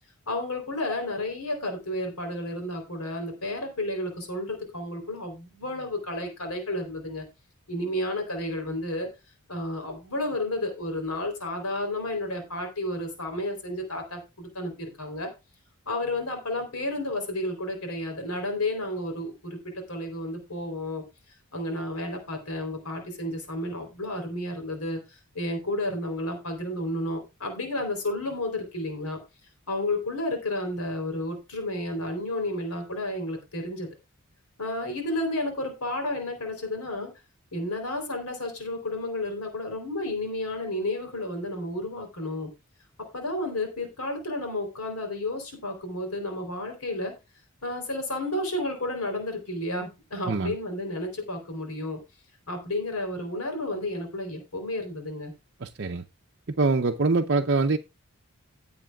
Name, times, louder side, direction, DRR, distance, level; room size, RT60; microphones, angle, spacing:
voice 1, 0.3-7.3 7.7-9.1 9.5-15.3 15.9-21.0 21.5-29.2 29.7-34.0 34.6-37.1 37.5-42.5 43.1-47.1 47.6-52.0 52.5-55.3, left 1 dB, 90° left, 3.7 m, -31 dB
voice 2, 55.6-56.0 56.6-57.8, right 3 dB, 50° right, 0.6 m, -24 dB
18.0 x 7.9 x 2.4 m
head